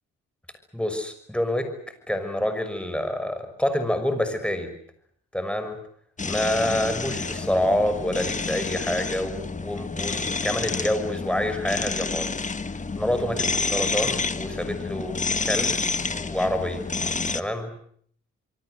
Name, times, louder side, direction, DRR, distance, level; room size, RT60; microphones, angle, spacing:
voice 1, 0.7-1.7 2.1-4.7 5.3-5.8 6.2-12.3 13.0-15.8 16.1-16.9 17.3-17.7, left 1 dB, 5° left, 8 dB, 6.1 m, -27 dB
sound 1, 6.2-17.4, left 4 dB, 25° left, 1.5 m, -29 dB
26.5 x 23.0 x 8.0 m, 0.63 s
cardioid pair, 90°, 30 cm